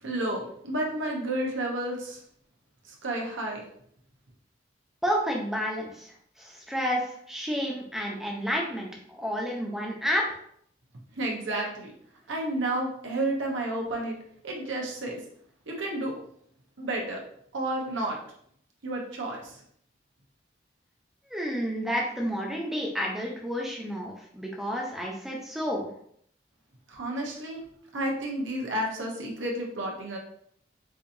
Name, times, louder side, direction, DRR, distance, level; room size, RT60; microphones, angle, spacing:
voice 1, 0.0-2.2 2.8-3.6 11.1-11.9 12.3-14.2 14.4-15.2 15.7-16.1 16.8-17.2 17.5-18.2 18.8-19.6 26.9-27.6 27.9-30.2, right 1 dB, 90° right, -1 dB, 0.9 m, -31 dB
voice 2, 5.0-6.1 6.4-10.2 21.3-25.9, equal, ahead, -1 dB, 0.7 m, -30 dB
4.7 x 2.8 x 2.6 m, 0.65 s
head